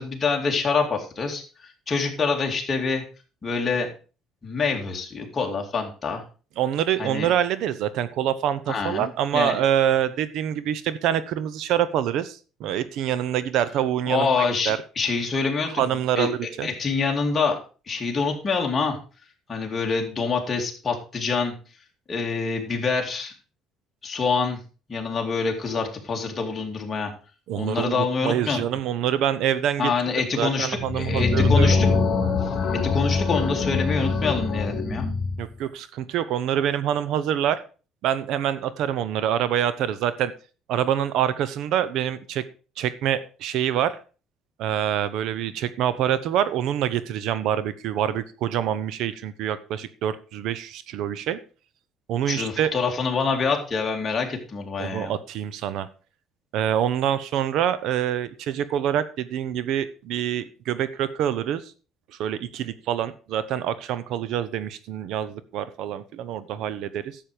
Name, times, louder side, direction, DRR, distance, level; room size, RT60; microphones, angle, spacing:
voice 1, 0.0-3.0 3.4-3.9 4.4-6.2 7.0-7.3 8.7-9.1 9.3-9.6 14.1-15.8 16.2-17.6 17.9-19.0 19.5-21.5 22.1-23.3 24.0-24.6 24.9-27.1 27.5-28.6 29.8-31.9 32.4-32.5 32.8-35.1 52.3-55.1, left 4 dB, 25° left, 1 dB, 2.4 m, -26 dB
voice 2, 6.6-14.3 14.7-14.8 15.8-16.7 27.5-29.9 30.4-31.8 35.4-37.6 38.0-40.3 40.7-42.4 42.8-44.0 44.6-51.4 52.1-52.7 54.8-55.9 56.5-61.6 62.2-67.2, right 10 dB, 70° right, 16 dB, 0.8 m, -26 dB
sound 1, 30.8-35.4, left 4 dB, 45° left, 2.0 m, -23 dB
11.5 x 7.5 x 4.9 m, 0.35 s
cardioid pair, 140°, 0 cm